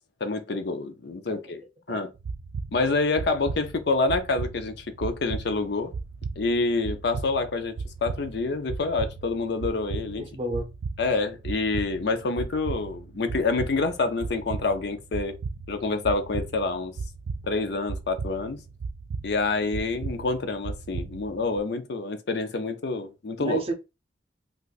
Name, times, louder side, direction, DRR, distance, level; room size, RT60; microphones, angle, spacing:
voice 1, 0.2-1.6 1.9-2.1 2.7-5.9 6.4-10.2 11.0-15.4 15.7-16.9 17.4-18.6 19.2-23.6, left 3 dB, 60° left, 0.5 m, -27 dB
sound 1, 2.2-21.6, right 4 dB, 85° right, 0.4 m, -36 dB
voice 2, 10.2-10.7 23.4-23.7, right 2 dB, 30° right, 0.6 m, -30 dB
2.5 x 2.4 x 3.9 m
head